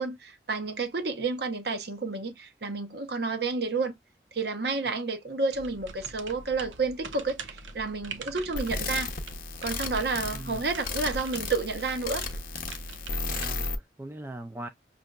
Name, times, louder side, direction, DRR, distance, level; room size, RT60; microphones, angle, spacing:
voice 1, 0.0-3.9 4.3-9.1 9.6-12.2, right 4 dB, 60° right, 0.9 m, -30 dB
sound 1, 5.5-13.7, right 4 dB, 85° right, 0.7 m, -44 dB
sound 2, 8.5-13.8, left 3 dB, 50° left, 0.7 m, -34 dB
voice 2, 10.3-10.6 13.3-14.7, right 1 dB, 15° right, 0.3 m, -40 dB
6.2 x 2.6 x 2.3 m
head